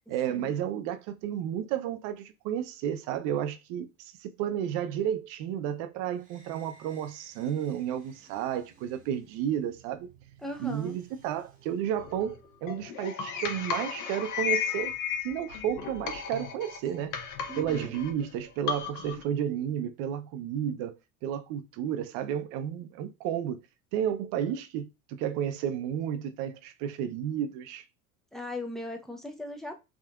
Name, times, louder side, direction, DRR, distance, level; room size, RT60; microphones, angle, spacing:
voice 1, 0.1-10.1 10.6-14.9 15.2-17.1 17.6-20.9 21.2-23.6 23.9-27.8, right 10 dB, 50° right, 0.6 m, -32 dB
sound 1, 6.1-12.7, right 5 dB, 20° right, 0.9 m, -58 dB
voice 2, 10.4-11.0 17.5-18.0 28.3-29.8, left 1 dB, ahead, 0.5 m, -38 dB
sound 2, 12.0-19.2, left 8 dB, 45° left, 0.9 m, -35 dB
3.5 x 2.5 x 2.3 m
hypercardioid pair, 85°, 43 cm